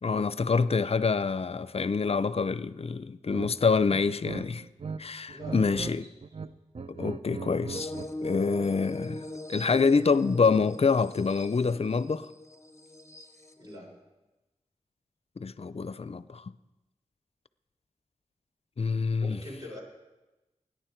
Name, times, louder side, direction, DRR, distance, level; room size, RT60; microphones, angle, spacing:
voice 1, 0.0-4.6 5.0-6.0 6.9-7.9 8.2-12.3 15.4-16.4 18.8-19.4, left 4 dB, 50° left, 0.5 m, -26 dB
sound 1, 3.3-3.5 3.9-5.0 5.3-5.9 6.2-8.1, right 5 dB, 50° right, 0.6 m, -38 dB
voice 2, 5.3-5.9 13.6-13.9 19.2-19.8, left 1 dB, 30° right, 5.9 m, -43 dB
sound 2, 7.7-13.8, left 1 dB, 20° left, 0.9 m, -41 dB
17.0 x 10.0 x 4.5 m
cardioid pair, 45°, 13 cm